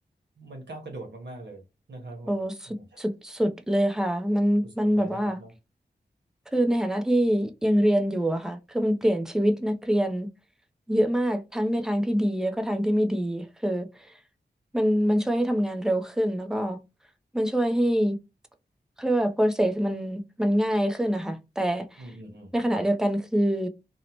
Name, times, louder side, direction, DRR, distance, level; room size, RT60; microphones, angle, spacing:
voice 1, 0.4-1.6 1.9-3.0 4.6-5.5 22.0-22.5, right 2 dB, 75° right, 0.9 m, -42 dB
voice 2, 2.3-5.4 6.5-10.3 10.9-13.9 14.7-16.8 17.3-18.2 19.0-22.1 22.5-23.7, equal, 5° right, 0.4 m, -25 dB
2.7 x 2.1 x 2.8 m
cardioid pair, 55°, 18 cm